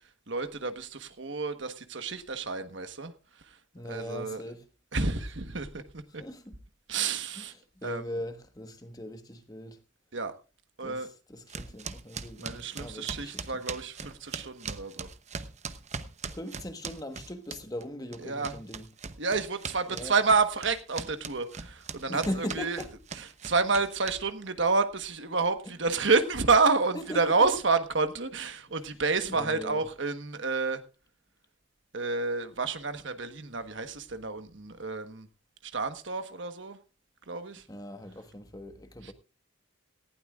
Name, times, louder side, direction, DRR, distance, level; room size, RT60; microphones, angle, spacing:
voice 1, 0.3-3.1 3.9-4.4 4.9-5.8 6.1-6.2 6.9-7.5 7.8-8.0 10.1-10.3 10.8-11.1 12.4-15.1 18.2-18.6 19.2-22.8 23.2-30.8 31.9-35.3 35.7-36.8 37.3-37.6 39.0-39.1, right 4 dB, 60° right, 1.3 m, -29 dB
voice 2, 3.7-4.6 6.2-6.6 7.4-9.8 10.8-13.6 16.3-18.9 19.9-20.2 22.1-22.9 26.9-27.4 29.3-29.8 37.7-39.1, equal, 20° left, 1.3 m, -39 dB
sound 1, 11.5-17.9 18.1-24.5, right 5 dB, 35° right, 0.9 m, -40 dB
18.5 x 15.5 x 2.5 m
head